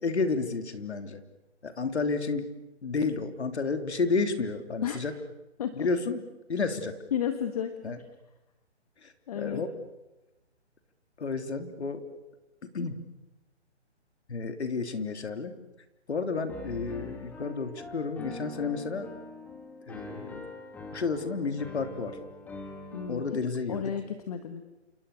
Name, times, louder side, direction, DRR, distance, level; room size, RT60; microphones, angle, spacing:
voice 1, 0.0-1.2 1.6-2.5 2.8-5.1 5.7-6.2 6.5-6.9 7.8-8.0 9.0-9.7 11.2-12.0 12.6-13.0 14.3-15.5 16.1-19.1 19.9-20.5 20.9-22.2 23.1-23.9, left 4 dB, 65° left, 7 dB, 3.3 m, -31 dB
voice 2, 7.1-7.7 9.3-9.6 22.9-23.4 23.7-24.6, left 9 dB, 35° left, 8 dB, 1.6 m, -32 dB
Piano, 16.5-23.3, left 2 dB, 5° left, 1.9 m, -43 dB
29.5 x 28.0 x 6.9 m, 1.0 s
hypercardioid pair, 155°, 35 cm